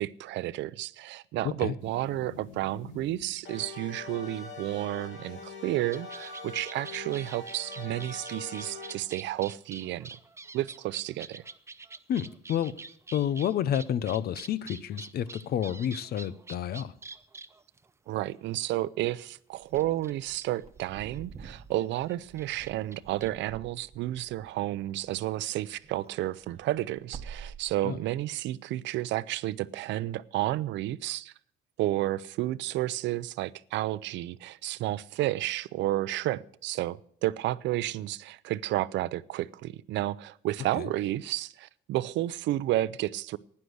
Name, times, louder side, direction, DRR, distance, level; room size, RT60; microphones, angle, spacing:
voice 1, 0.0-10.1 10.5-11.4 18.1-31.3 31.8-43.4, right 15 dB, 75° right, 0.6 m, -31 dB
voice 2, 1.4-1.7 12.1-12.7 13.1-16.9 27.8-28.0 40.8-40.9, left 10 dB, 55° left, 0.7 m, -30 dB
sound 1, 1.8-9.0, left 3 dB, 90° left, 2.7 m, -43 dB
sound 2, 5.9-18.1 19.2-19.3 19.8-21.2 21.5-21.6 21.8-23.3, right 4 dB, 15° right, 0.6 m, -46 dB
Wind / Car, 19.6-25.4 25.8-28.2, right 6 dB, 35° right, 1.1 m, -48 dB
11.5 x 9.7 x 7.9 m
cardioid pair, 130°, 19 cm